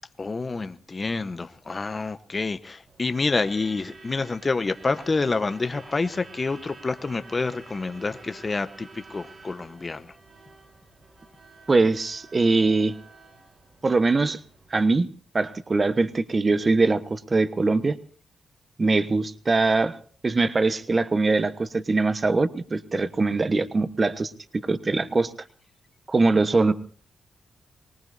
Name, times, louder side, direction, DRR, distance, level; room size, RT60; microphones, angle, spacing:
voice 1, 0.2-10.1, left 3 dB, 35° left, 10 dB, 1.1 m, -28 dB
Truck / Alarm, 2.9-14.8, right 3 dB, 55° right, 3.9 m, -49 dB
voice 2, 11.7-12.9 13.8-14.4 14.7-15.1 15.3-18.0 18.8-20.0 20.2-25.3 26.1-26.7, right 3 dB, 35° right, 11 dB, 1.2 m, -22 dB
24.0 x 19.0 x 2.7 m, 0.43 s
cardioid pair, 60°, 0 cm